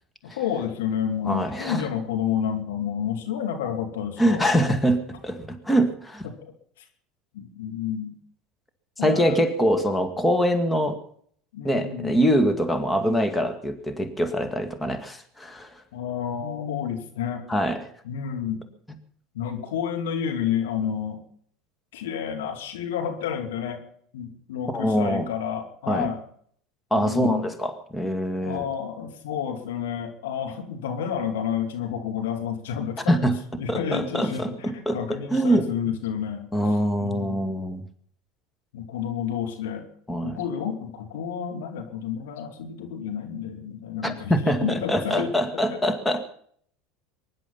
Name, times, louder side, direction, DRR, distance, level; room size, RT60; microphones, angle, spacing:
voice 1, 0.2-4.4 6.2-6.5 7.3-8.1 9.0-9.4 11.5-12.1 15.9-17.4 18.0-18.6 19.3-21.2 21.9-23.8 24.1-26.2 26.9-27.5 28.4-33.2 33.6-36.5 37.0-37.5 38.7-39.8 40.2-44.3 44.6-45.3 45.7-45.8, left 8 dB, 75° left, 4 dB, 2.6 m, -30 dB
voice 2, 1.2-1.8 4.2-6.3 9.0-11.0 11.6-15.7 17.5-17.8 24.7-25.3 25.9-26.1 26.9-28.7 33.1-33.4 33.7-35.7 36.5-37.8 40.1-40.4 44.0-46.2, equal, 10° left, 7 dB, 2.2 m, -24 dB
23.5 x 11.0 x 5.7 m, 0.62 s
hypercardioid pair, 75°, 0 cm